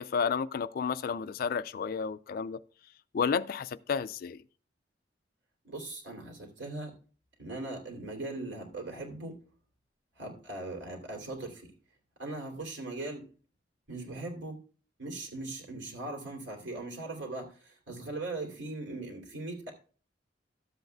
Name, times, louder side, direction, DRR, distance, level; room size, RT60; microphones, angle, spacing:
voice 1, 0.0-2.6 3.1-4.4, left 6 dB, 50° left, 0.3 m, -31 dB
voice 2, 5.6-6.9 7.4-9.4 10.2-11.7 12.2-13.3 13.9-14.6 15.0-19.7, right 2 dB, 80° right, 2.8 m, -39 dB
12.5 x 7.8 x 2.3 m
head